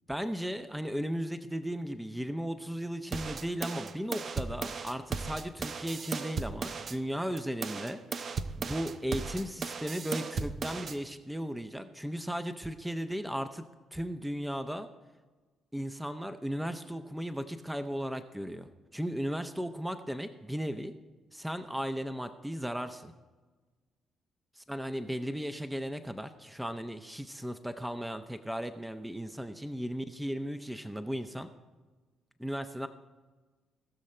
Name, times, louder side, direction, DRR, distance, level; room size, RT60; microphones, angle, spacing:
voice 1, 0.1-8.0 8.6-14.9 15.7-20.9 21.3-23.1 24.7-31.5 32.4-32.9, equal, 5° right, 9 dB, 0.7 m, -36 dB
sound 1, 3.1-7.0 7.4-11.0, right 5 dB, 50° right, 0.6 m, -36 dB
18.5 x 6.4 x 4.4 m, 1.3 s
supercardioid pair, 60°, 0 cm